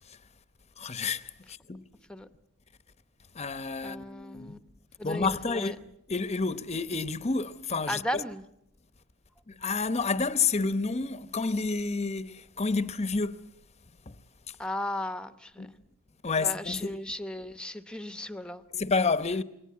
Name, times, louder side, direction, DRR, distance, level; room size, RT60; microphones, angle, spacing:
voice 1, 0.8-1.9 3.3-4.6 5.0-8.2 9.5-13.5 14.1-14.2 15.6-15.7 16.2-17.0 18.7-19.4, left 4 dB, 30° left, 0.9 m, -30 dB
voice 2, 3.8-4.6 5.0-5.7 7.9-8.4 14.6-15.7 16.4-18.6, left 1 dB, 5° left, 1.0 m, -36 dB
27.0 x 22.0 x 8.4 m
head